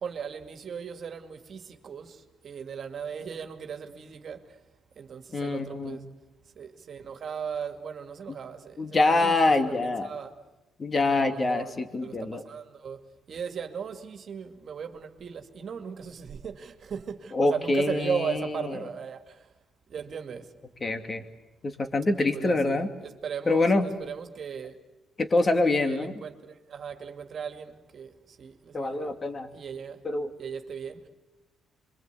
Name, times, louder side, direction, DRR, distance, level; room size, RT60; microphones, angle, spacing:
voice 1, 0.0-4.4 5.0-6.1 6.6-10.3 11.1-11.7 12.0-13.0 13.3-19.4 19.9-20.5 22.2-24.7 25.8-29.1 29.5-30.0 30.4-31.1, right 7 dB, 55° right, 2.2 m, -37 dB
voice 2, 5.3-6.0 8.8-10.1 10.8-12.4 17.3-18.7 20.8-21.2 21.6-22.9 23.5-23.8 25.2-26.1 28.7-29.5 30.0-30.3, left 2 dB, 35° left, 2.7 m, -25 dB
27.0 x 23.5 x 8.3 m
cardioid pair, 90°, 0 cm